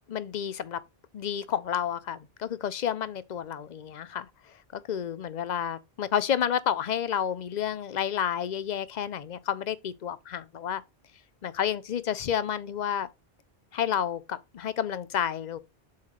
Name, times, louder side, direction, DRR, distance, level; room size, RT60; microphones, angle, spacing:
voice 1, 0.1-0.8 1.1-4.3 4.7-10.8 11.4-13.1 13.7-15.6, left 9 dB, 50° left, 0.6 m, -30 dB
7.3 x 4.3 x 3.0 m
omnidirectional pair, 1.0 m